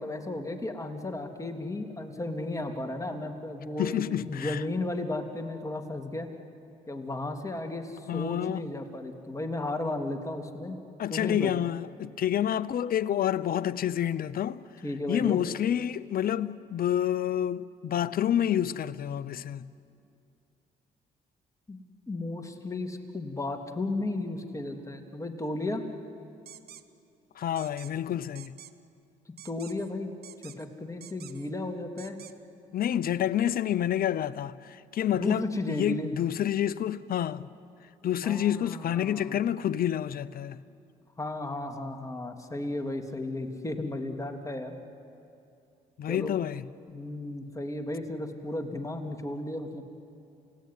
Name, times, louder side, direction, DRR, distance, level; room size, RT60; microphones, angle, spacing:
voice 1, 0.0-6.3 6.9-10.8 11.1-11.5 14.8-15.4 21.7-21.8 22.1-25.8 29.4-30.1 30.4-32.2 35.1-36.1 38.2-39.4 41.2-44.8 46.1-46.4 46.9-49.8, left 2 dB, 20° left, 3.1 m, -34 dB
voice 2, 3.8-4.6 8.1-8.6 11.0-14.6 15.1-19.7 27.4-28.5 32.7-37.5 38.0-40.6 46.0-46.6, left 10 dB, 55° left, 0.8 m, -28 dB
sound 1, 26.5-26.8 27.6-27.9 28.3-28.7 29.4-29.9 30.2-30.7 31.0-31.5 32.0-32.3, right 10 dB, 65° right, 1.1 m, -48 dB
28.5 x 17.5 x 9.5 m
supercardioid pair, 65°, 18 cm